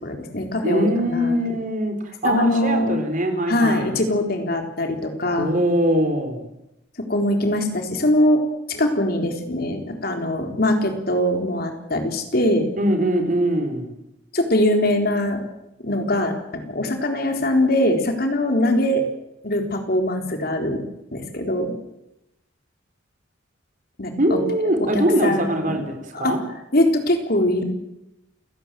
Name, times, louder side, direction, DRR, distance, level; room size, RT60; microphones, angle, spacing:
voice 1, 0.0-1.4 2.2-3.0 3.5-5.5 7.0-8.4 8.7-12.6 14.3-15.4 15.8-19.0 19.4-20.8 21.1-21.8 24.0-24.4 24.8-25.8 26.1-26.3 26.7-27.6, left 1 dB, 50° left, 4 dB, 3.9 m, -22 dB
voice 2, 0.6-1.9 2.2-4.0 5.4-6.4 12.8-13.9 24.2-26.4, right 1 dB, 40° right, 6 dB, 4.3 m, -22 dB
29.0 x 18.5 x 7.7 m, 0.90 s
head